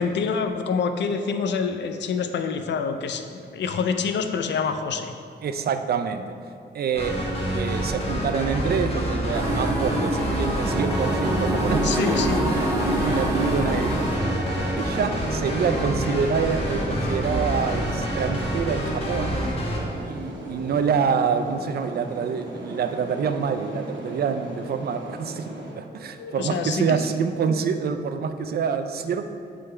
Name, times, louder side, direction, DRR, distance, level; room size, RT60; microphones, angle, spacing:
voice 1, 0.0-5.1 11.8-12.5 26.2-27.1, left 5 dB, 75° left, 7 dB, 0.4 m, -26 dB
voice 2, 5.4-6.3 6.7-7.2 7.5-12.6 13.0-14.1 14.8-19.4 20.0-25.5 25.8-29.3, right 6 dB, 60° right, 8 dB, 0.4 m, -26 dB
sound 1, 6.9-19.8, equal, 35° left, 1.2 m, -27 dB
sound 2, 9.3-14.2, right 1 dB, 15° right, 0.6 m, -27 dB
sound 3, 10.6-25.7, right 1 dB, 85° right, 1.1 m, -35 dB
7.8 x 3.8 x 3.2 m, 2.5 s
cardioid pair, 95°, 18 cm